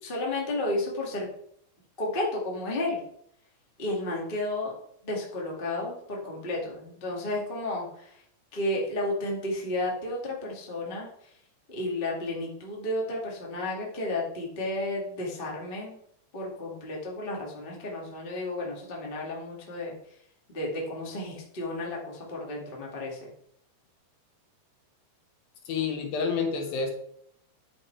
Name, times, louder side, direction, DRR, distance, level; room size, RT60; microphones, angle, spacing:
voice 1, 0.0-1.3 2.0-3.0 3.8-4.7 5.0-8.2 8.5-11.1 11.7-16.0 16.3-19.9 20.5-23.3, left 1 dB, 20° left, -2 dB, 1.5 m, -32 dB
voice 2, 25.7-26.9, left 5 dB, 70° left, 4 dB, 2.7 m, -28 dB
9.9 x 6.0 x 4.6 m, 0.70 s
omnidirectional pair, 4.5 m